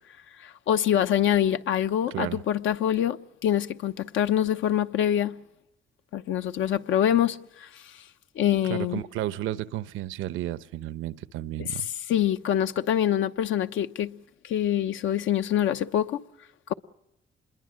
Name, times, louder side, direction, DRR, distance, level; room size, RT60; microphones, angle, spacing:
voice 1, 0.4-5.3 6.1-8.0 8.4-9.0 11.6-11.7 12.1-14.1 14.4-16.2, left 10 dB, 80° left, 1.0 m, -25 dB
voice 2, 2.1-2.4 8.6-11.9, right 13 dB, 90° right, 0.9 m, -32 dB
26.5 x 22.0 x 6.4 m
cardioid pair, 90°, 20 cm